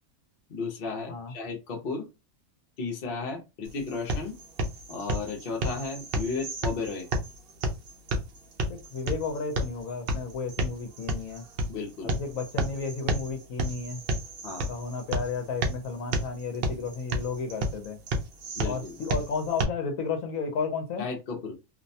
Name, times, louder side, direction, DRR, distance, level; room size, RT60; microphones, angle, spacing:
voice 1, 0.5-2.1 2.8-4.4 4.9-7.1 11.7-12.1 14.4-14.7 18.6-19.0 21.0-21.5, left 4 dB, 50° left, 0.8 m, -34 dB
sound 1, 3.6-19.6, right 1 dB, 60° right, 0.6 m, -32 dB
voice 2, 8.7-11.4 12.0-14.0 14.7-18.0 18.6-21.0, left 4 dB, 75° left, 1.0 m, -33 dB
2.6 x 2.1 x 2.6 m
omnidirectional pair, 1.5 m